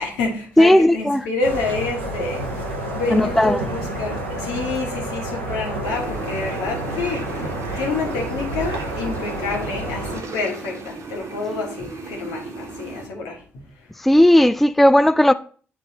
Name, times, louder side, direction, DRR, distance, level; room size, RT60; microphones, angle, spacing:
voice 1, 0.0-2.4 2.9-13.4, left 3 dB, 70° left, 1.5 m, -28 dB
voice 2, 0.6-1.2 3.1-3.6 14.0-15.3, left 1 dB, 5° left, 0.3 m, -15 dB
sound 1, 1.4-10.2, right 1 dB, 85° right, 0.8 m, -29 dB
sound 2, 5.8-13.1, right 3 dB, 55° right, 1.1 m, -36 dB
9.6 x 3.7 x 2.9 m
figure-of-eight pair, 40°, 6 cm